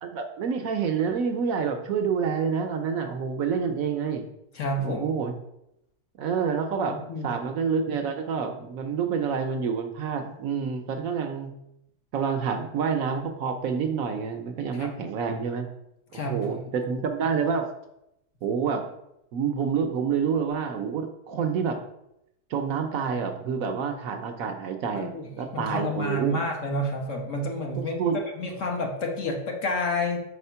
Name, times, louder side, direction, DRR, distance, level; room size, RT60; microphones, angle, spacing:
voice 1, 0.0-4.3 4.8-5.3 6.2-7.0 7.2-11.5 12.1-15.7 16.1-17.7 18.4-18.8 19.3-21.8 22.5-26.4 28.0-28.2, right 6 dB, 70° right, 6 dB, 1.0 m, -28 dB
voice 2, 4.5-5.1 7.1-7.3 14.7-14.9 16.1-16.6 24.9-25.3 25.5-28.0 28.4-30.2, left 1 dB, 55° left, 1 dB, 1.3 m, -29 dB
5.0 x 4.2 x 5.5 m, 0.83 s
omnidirectional pair, 1.7 m